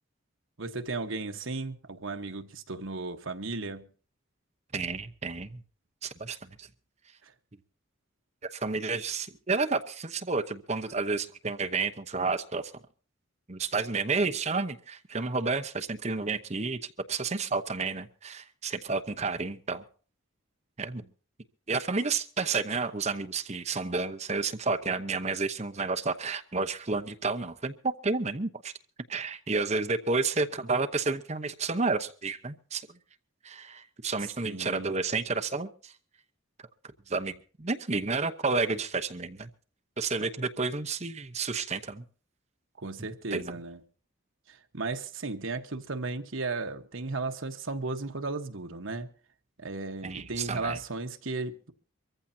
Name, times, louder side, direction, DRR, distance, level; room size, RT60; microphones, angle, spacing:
voice 1, 0.6-3.9 7.2-7.3 34.4-34.9 42.8-43.8 44.5-49.1 49.6-51.7, right 3 dB, 70° right, 1.3 m, -35 dB
voice 2, 4.7-5.6 6.0-6.7 8.5-12.7 13.5-16.8 17.1-19.8 20.8-21.1 21.7-28.7 29.1-32.9 33.4-35.9 37.1-39.5 40.0-42.0 43.0-43.5 50.0-50.8, right 4 dB, 35° right, 0.9 m, -31 dB
24.0 x 15.0 x 2.8 m
head